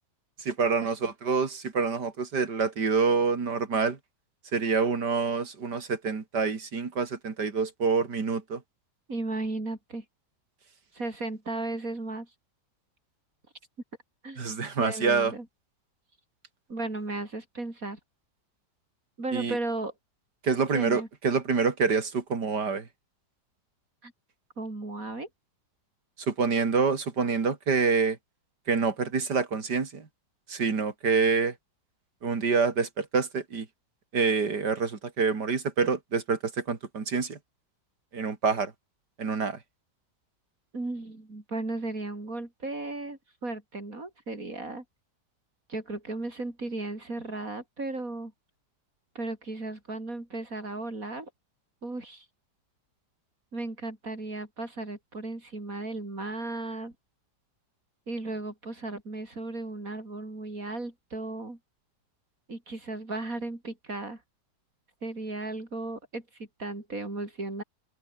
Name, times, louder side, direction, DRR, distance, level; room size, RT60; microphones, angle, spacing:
voice 1, 0.4-4.0 4.5-8.6 14.4-15.3 19.3-19.6 20.4-22.9 26.3-28.2 28.7-30.1 30.5-31.5 32.2-33.7 34.1-37.4 38.1-38.7 39.2-39.6, right 5 dB, 80° right, 3.4 m, -27 dB
voice 2, 9.1-10.0 10.9-12.3 14.2-14.4 14.8-15.5 16.7-18.0 19.2-19.9 20.7-21.1 24.0-24.1 24.6-25.3 40.7-44.8 45.7-48.3 49.2-51.3 51.8-52.3 53.5-56.9 58.1-61.6 62.5-64.2 65.0-67.6, right 2 dB, 55° right, 5.4 m, -35 dB
omnidirectional pair, 1.8 m